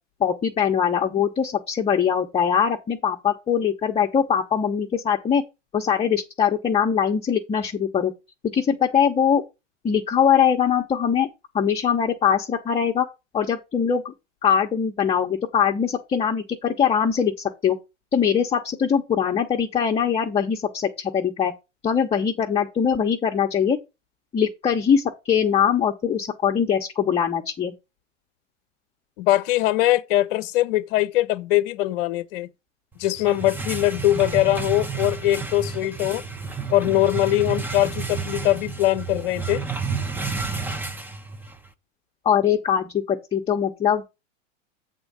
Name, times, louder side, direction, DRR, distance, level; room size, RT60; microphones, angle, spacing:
voice 1, 0.2-5.4 5.7-8.1 8.5-9.4 9.8-11.3 11.5-13.1 13.3-14.1 14.4-17.3 17.6-17.8 18.1-21.5 21.8-23.8 24.3-27.7 42.2-44.1, left 7 dB, 15° left, 0.9 m, -22 dB
voice 2, 29.2-32.5 33.0-36.2 36.7-39.6, left 15 dB, 45° left, 0.8 m, -21 dB
sound 1, 33.0-41.7, right 5 dB, 5° right, 0.6 m, -31 dB
8.0 x 3.7 x 6.7 m
hypercardioid pair, 105°, 37 cm